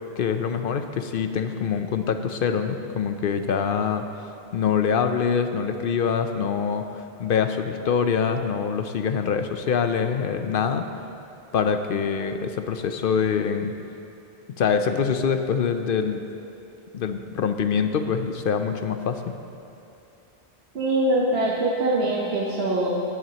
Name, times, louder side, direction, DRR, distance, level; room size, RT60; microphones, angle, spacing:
voice 1, 0.2-4.1 4.5-10.8 11.5-13.7 14.6-16.2 16.9-19.3, left 6 dB, 65° left, 8 dB, 0.7 m, -24 dB
voice 2, 20.7-23.0, right 1 dB, 75° right, -4 dB, 1.3 m, -23 dB
17.0 x 10.5 x 2.9 m, 2.9 s
omnidirectional pair, 1.1 m